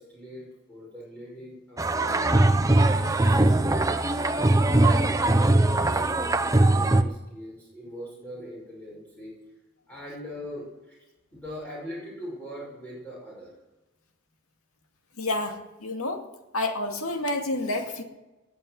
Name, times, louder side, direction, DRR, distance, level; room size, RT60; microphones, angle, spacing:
voice 1, 0.0-2.4 2.9-9.3 9.9-11.0 11.3-13.5, equal, 5° left, -6 dB, 6.1 m, -41 dB
sound 1, 1.8-7.0, right 2 dB, 15° right, 0.7 m, -21 dB
voice 2, 15.2-16.3 16.5-18.0, left 2 dB, 85° left, 4 dB, 2.3 m, -29 dB
20.5 x 7.4 x 9.3 m, 1.0 s
head